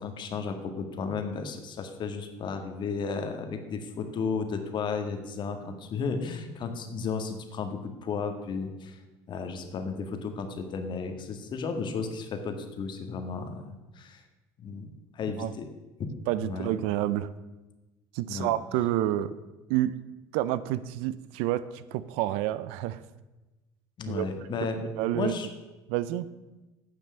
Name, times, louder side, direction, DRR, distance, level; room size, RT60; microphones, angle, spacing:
voice 1, 0.0-9.0 9.3-14.2 14.6-14.9 15.1-15.7 16.0-16.1 16.4-16.7 18.3-18.5 24.0-24.8 25.1-25.5, left 5 dB, 50° left, 7 dB, 1.8 m, -33 dB
voice 2, 16.3-17.3 18.1-19.4 19.7-20.0 20.3-23.0 24.1-24.3 24.8-25.3 25.9-26.3, right 13 dB, 75° right, 16 dB, 0.6 m, -29 dB
9.9 x 6.2 x 8.0 m, 1.1 s
supercardioid pair, 85°, 10 cm